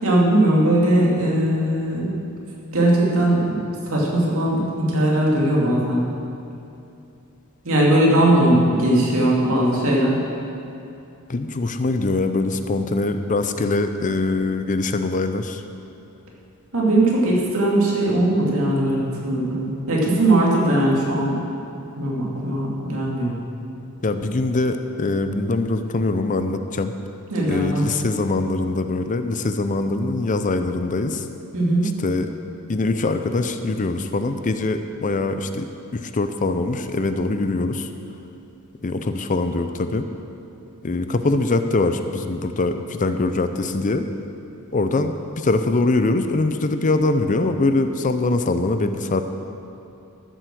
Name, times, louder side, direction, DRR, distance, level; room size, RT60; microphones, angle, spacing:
voice 1, 0.0-2.1 2.7-3.6 3.9-6.0 7.6-10.2 16.7-21.4 22.0-23.3 27.3-27.8 31.5-31.9, right 1 dB, 65° right, -4 dB, 2.6 m, -19 dB
voice 2, 11.3-15.6 24.0-26.9 27.5-31.2 31.8-32.3 32.7-35.7 35.9-37.9 38.8-40.0 40.8-44.1 44.7-49.2, left 2 dB, 35° left, 8 dB, 0.5 m, -23 dB
14.0 x 7.8 x 6.2 m, 2.7 s
head